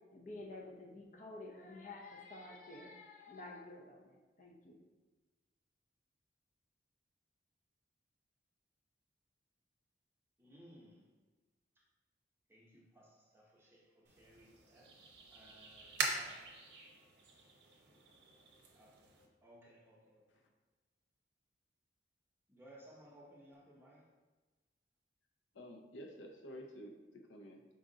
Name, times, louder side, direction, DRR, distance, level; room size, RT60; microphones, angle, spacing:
voice 1, 0.1-4.8, left 2 dB, 40° left, 0 dB, 0.6 m, -51 dB
voice 2, 10.4-11.1 11.8-11.9 12.5-15.0 15.3-16.5 18.7-19.0 19.4-20.4 22.5-24.1, right 1 dB, 10° right, -5 dB, 0.8 m, -61 dB
sound 1, 14.0-19.3, right 4 dB, 65° right, 0.7 m, -44 dB
voice 3, 25.5-27.6, equal, 85° left, 3 dB, 0.6 m, -51 dB
5.2 x 2.4 x 3.8 m, 1.3 s
head